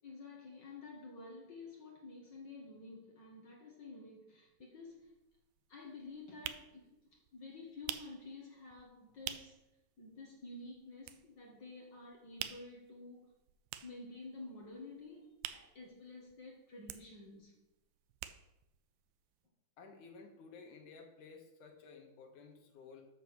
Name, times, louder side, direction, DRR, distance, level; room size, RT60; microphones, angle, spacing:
voice 1, 0.0-5.1 5.7-9.6 10.0-13.3 13.8-17.6, left 3 dB, 45° left, -1 dB, 1.8 m, -51 dB
sound 1, 4.6-4.7 5.0-9.7 10.0-10.1 10.4-11.6 11.9-16.4 16.7-18.8 19.1-19.2 19.3-19.4, right 12 dB, 90° right, 2.3 m, -47 dB
voice 2, 19.8-23.0, left 4 dB, 70° left, 3 dB, 2.8 m, -54 dB
8.3 x 6.6 x 6.6 m, 0.90 s
omnidirectional pair, 3.8 m